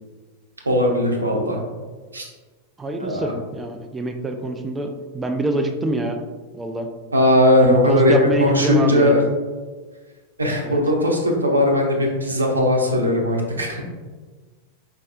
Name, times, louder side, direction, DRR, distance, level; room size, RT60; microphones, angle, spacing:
voice 1, 0.6-1.6 2.1-2.3 3.0-3.3 7.1-9.2 10.4-13.8, left 1 dB, 75° right, 1 dB, 0.8 m, -18 dB
voice 2, 2.8-6.2 6.5-6.9 7.6-9.2 10.6-10.8, right 1 dB, 15° right, 4 dB, 0.4 m, -26 dB
5.1 x 4.1 x 2.5 m, 1.4 s
figure-of-eight pair, 90°, 0 cm